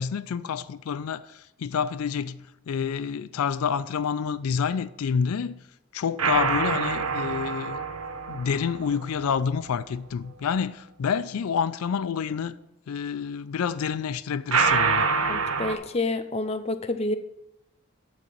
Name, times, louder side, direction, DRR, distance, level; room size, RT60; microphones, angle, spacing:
voice 1, 0.0-5.6 5.9-7.8 8.3-12.5 12.9-15.1, left 7 dB, 90° left, 0.4 m, -28 dB
sound 1, 6.2-9.5 14.5-15.8, right 5 dB, 90° right, 0.8 m, -26 dB
voice 2, 15.3-17.1, left 2 dB, 30° left, 0.5 m, -28 dB
9.2 x 4.1 x 7.2 m
head